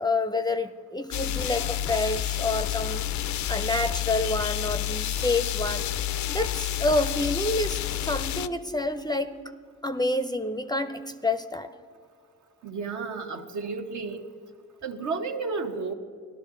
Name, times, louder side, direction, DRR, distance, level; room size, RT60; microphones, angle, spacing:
voice 1, 0.0-5.9 6.3-9.3 9.8-11.7, left 2 dB, 15° left, 11 dB, 0.5 m, -28 dB
sound 1, 1.1-8.5, left 12 dB, 65° left, 0.5 m, -29 dB
voice 2, 12.6-14.2 14.8-15.9, right 4 dB, 65° right, 4 dB, 1.1 m, -32 dB
16.0 x 12.0 x 3.8 m, 2.1 s
cardioid pair, 70°, 32 cm